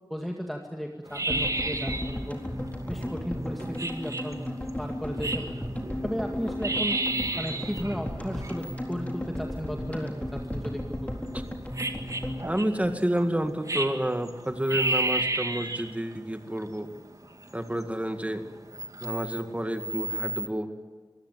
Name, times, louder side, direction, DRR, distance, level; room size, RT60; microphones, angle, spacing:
voice 1, 0.1-2.4 2.9-4.5 4.8-5.5 6.0-7.0 7.4-11.1, equal, ahead, 2 dB, 2.0 m, -35 dB
sound 1, 1.1-20.5, right 2 dB, 45° right, 2.1 m, -33 dB
sound 2, 1.3-13.5 13.8-13.9 14.0-14.1, left 1 dB, 20° left, 4.1 m, -35 dB
voice 2, 12.4-16.9 17.5-18.5 19.0-20.7, right 1 dB, 15° right, 7 dB, 2.1 m, -29 dB
24.0 x 16.5 x 9.3 m, 1.5 s
wide cardioid pair, 65°, 8 cm